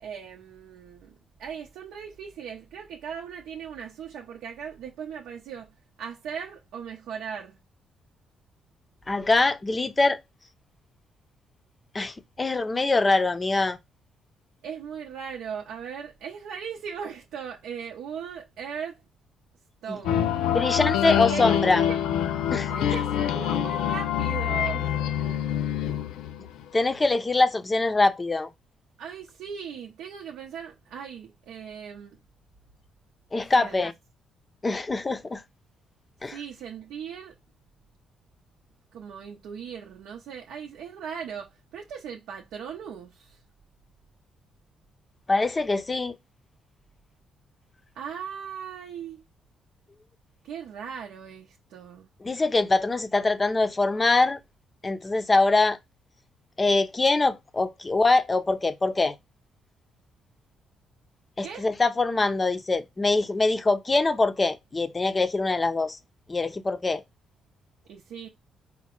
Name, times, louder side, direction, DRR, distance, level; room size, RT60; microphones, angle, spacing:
voice 1, 0.0-5.7 6.0-7.6 14.6-19.0 19.8-22.0 22.7-25.5 29.0-32.2 33.5-33.9 36.3-37.4 38.9-43.4 47.9-49.2 50.4-52.1 61.4-61.7 67.9-68.3, right 7 dB, 80° right, 0.6 m, -38 dB
voice 2, 9.1-10.2 11.9-13.8 20.5-21.8 22.5-22.7 26.7-28.5 33.3-33.9 34.6-35.4 36.2-36.4 45.3-46.2 52.2-54.4 54.8-55.8 56.6-59.1 61.4-66.0 66.3-67.0, left 3 dB, 25° left, 0.5 m, -23 dB
sound 1, 20.0-26.6, left 10 dB, 85° left, 0.4 m, -26 dB
4.5 x 2.1 x 4.3 m
cardioid pair, 90°, 0 cm